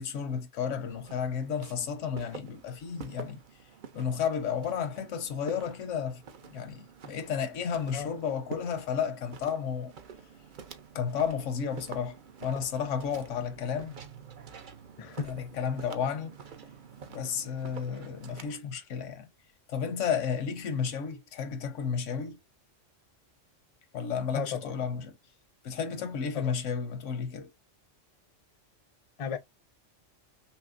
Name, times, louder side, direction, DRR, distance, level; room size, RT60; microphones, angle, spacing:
voice 1, 0.0-3.4 3.9-6.2 6.5-9.9 10.9-14.0 15.3-16.3 17.1-19.3 19.7-22.4 23.9-25.1 25.6-27.5, left 7 dB, 85° left, 1.1 m, -32 dB
Walk footsteps, 0.9-18.6, right 6 dB, 50° right, 0.7 m, -48 dB
voice 2, 15.0-15.4 24.3-24.9 26.3-26.5 29.2-29.4, left 6 dB, 40° left, 0.5 m, -35 dB
5.7 x 2.0 x 2.5 m
omnidirectional pair, 1.2 m